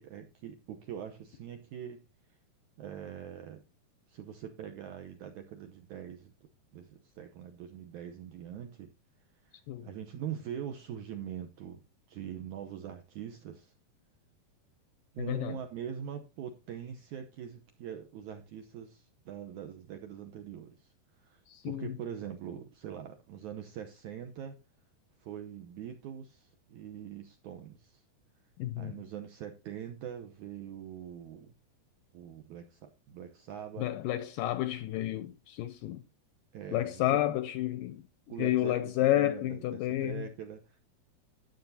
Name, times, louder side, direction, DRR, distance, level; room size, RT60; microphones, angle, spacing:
voice 1, 0.0-2.0 2.8-3.6 4.1-6.3 6.7-8.9 9.4-11.8 12.1-13.7 15.1-20.9 21.2-24.6 25.2-28.0 28.8-31.5 32.1-33.9 36.5-37.2 38.3-40.8, right 9 dB, 75° right, 1.8 m, -43 dB
voice 2, 21.5-21.9 28.6-29.0 33.8-36.0 36.7-38.0 38.4-40.3, left 14 dB, 80° left, 2.0 m, -30 dB
13.0 x 9.2 x 2.7 m
omnidirectional pair, 4.5 m